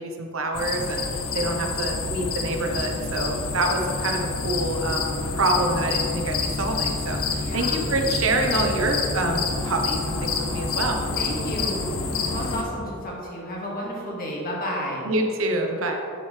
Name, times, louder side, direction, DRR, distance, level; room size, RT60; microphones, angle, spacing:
voice 1, 0.0-11.1 15.0-16.0, right 2 dB, 65° right, 2 dB, 1.0 m, -26 dB
sound 1, 0.5-12.6, left 4 dB, 75° left, 1.0 m, -28 dB
voice 2, 7.4-7.8 11.2-15.1, equal, 40° left, -4 dB, 2.1 m, -32 dB
10.5 x 8.0 x 3.3 m, 2.6 s
head